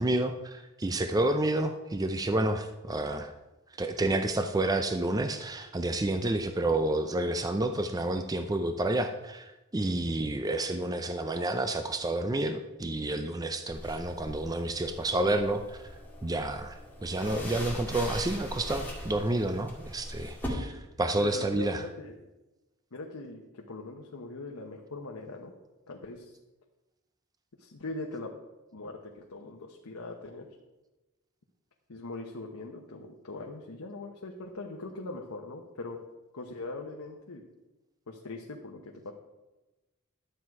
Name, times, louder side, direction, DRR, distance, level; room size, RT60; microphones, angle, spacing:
voice 1, 0.0-3.3 3.8-15.8 16.2-21.8, right 2 dB, 15° right, 8 dB, 0.5 m, -30 dB
sound 1, 13.7-20.5, left 1 dB, 10° left, 2.1 m, -41 dB
voice 2, 21.1-22.2 22.9-25.5 25.9-26.4 27.6-28.3 28.7-30.5 31.9-36.0 36.3-37.4 38.1-39.1, left 2 dB, 80° left, 1 dB, 1.0 m, -41 dB
12.0 x 7.8 x 4.7 m, 1.1 s
head